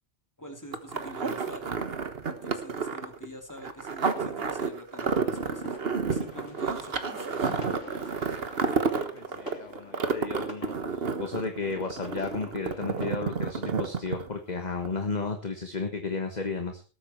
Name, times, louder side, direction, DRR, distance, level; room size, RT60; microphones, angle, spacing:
voice 1, 0.4-1.7 2.2-5.8 6.0-7.6 8.0-8.2, left 1 dB, 15° left, 3 dB, 3.0 m, -45 dB
sound 1, 0.7-14.5 14.8-14.9, right 5 dB, 55° right, 1.5 m, -30 dB
sound 2, 5.0-13.1, left 2 dB, 80° left, 3.2 m, -46 dB
voice 2, 9.0-16.8, left 4 dB, 35° left, 5 dB, 1.6 m, -33 dB
19.0 x 8.8 x 4.5 m, 0.37 s
omnidirectional pair, 1.2 m